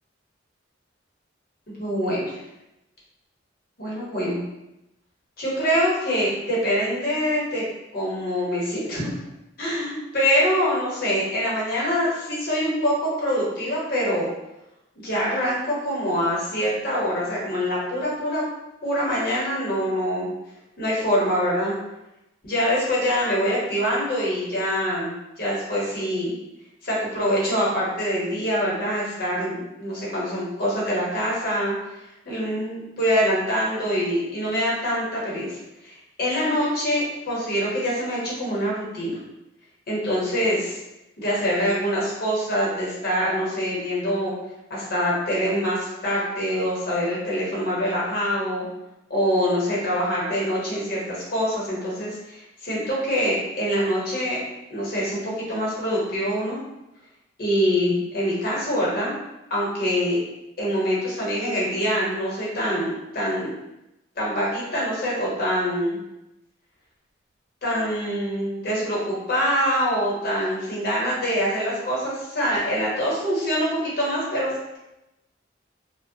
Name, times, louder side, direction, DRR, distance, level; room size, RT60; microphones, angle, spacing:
voice 1, 1.8-2.4 3.8-4.4 5.4-7.6 7.9-9.1 9.6-14.3 15.0-18.4 18.8-20.3 20.8-21.8 22.4-25.1 25.4-26.3 26.8-31.7 32.2-39.2 39.9-40.8 41.2-44.3 44.7-48.7 49.1-54.4 54.7-56.6 57.4-59.1 59.5-60.2 60.6-63.5 64.2-66.0 67.6-74.8, equal, 55° left, -5 dB, 1.0 m, -24 dB
2.9 x 2.1 x 2.7 m, 0.92 s
head